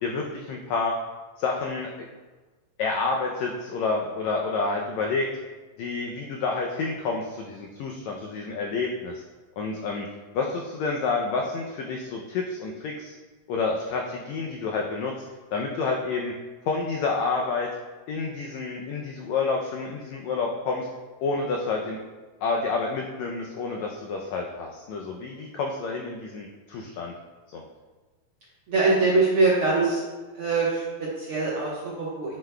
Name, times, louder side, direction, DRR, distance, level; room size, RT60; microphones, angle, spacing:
voice 1, 0.0-0.9 1.4-1.9 2.8-5.3 5.8-9.1 9.6-10.1 10.3-13.1 13.5-15.1 15.5-16.3 16.7-17.7 18.1-20.9 21.2-22.0 22.4-27.1 27.5-27.6, left 4 dB, 90° left, 1 dB, 1.5 m, -29 dB
voice 2, 28.7-30.0 30.3-32.4, right 3 dB, 65° right, -7 dB, 1.4 m, -23 dB
9.9 x 5.8 x 2.2 m, 1.3 s
omnidirectional pair, 3.9 m